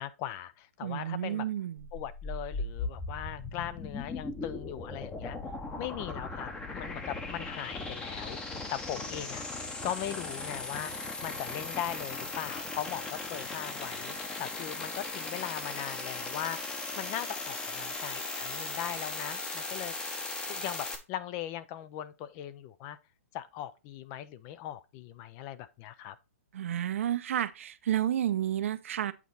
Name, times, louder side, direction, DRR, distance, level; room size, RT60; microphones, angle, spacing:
voice 1, 0.0-1.5 1.9-5.4 5.8-9.4 9.8-10.9 11.2-16.6 17.0-19.9 20.5-23.0 23.3-26.2, left 11 dB, 30° left, 0.5 m, -39 dB
voice 2, 0.8-1.8 26.5-29.1, right 11 dB, 65° right, 0.7 m, -31 dB
sound 1, 1.8-21.0, left 3 dB, 10° left, 0.8 m, -38 dB
8.4 x 4.1 x 3.9 m
hypercardioid pair, 150°, 8 cm